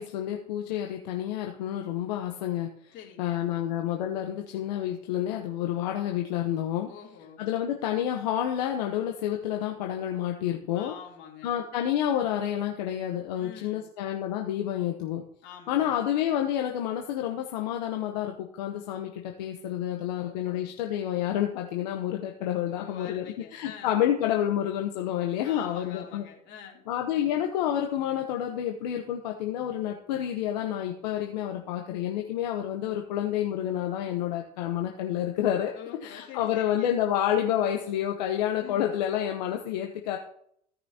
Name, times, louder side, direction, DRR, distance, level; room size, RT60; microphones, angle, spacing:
voice 1, 0.0-6.9 7.4-10.9 11.4-15.2 15.7-23.2 23.5-26.2 26.9-35.7 36.0-40.2, left 11 dB, 85° left, 2 dB, 1.0 m, -29 dB
voice 2, 2.9-3.5 6.9-7.5 10.7-11.6 13.4-13.9 15.4-16.0 20.2-20.7 22.7-24.0 25.4-26.8 35.7-37.0 38.6-39.0, left 8 dB, 65° left, 0 dB, 3.1 m, -46 dB
16.5 x 6.0 x 2.9 m, 0.67 s
hypercardioid pair, 75°, 21 cm